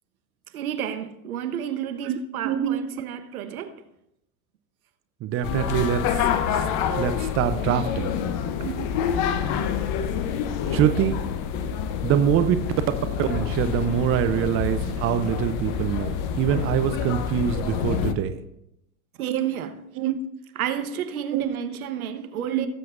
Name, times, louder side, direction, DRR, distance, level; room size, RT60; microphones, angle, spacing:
voice 1, 0.5-3.7 8.6-8.9 19.2-19.8 20.5-22.7, right 9 dB, 75° right, 1.2 m, -30 dB
voice 2, 2.4-2.8 5.2-6.0 6.5-6.6 7.0-8.1 10.7-11.2 12.0-12.6 13.2-18.4 20.0-20.2 21.3-21.6 22.4-22.7, right 10 dB, 30° right, 0.6 m, -24 dB
sound 1, 5.4-18.1, left 7 dB, 45° left, 0.9 m, -27 dB
17.5 x 7.6 x 2.6 m
hypercardioid pair, 90°, 43 cm